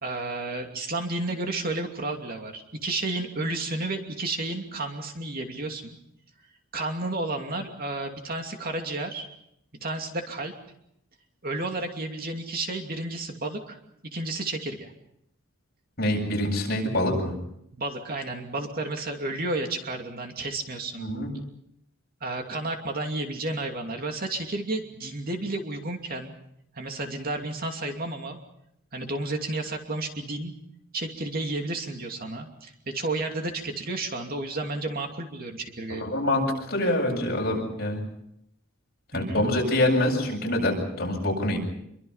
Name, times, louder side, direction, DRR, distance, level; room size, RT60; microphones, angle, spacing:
voice 1, 0.0-6.0 6.7-9.3 9.8-10.5 11.4-13.8 14.1-14.9 17.7-21.1 22.2-26.4 26.7-28.4 28.9-30.5 30.9-36.1 39.1-39.4, right 2 dB, 45° right, 3 dB, 2.7 m, -32 dB
voice 2, 16.0-17.3 21.0-21.3 35.9-38.0 39.1-41.6, left 1 dB, 50° left, 0 dB, 7.8 m, -25 dB
27.0 x 23.5 x 5.7 m, 0.76 s
head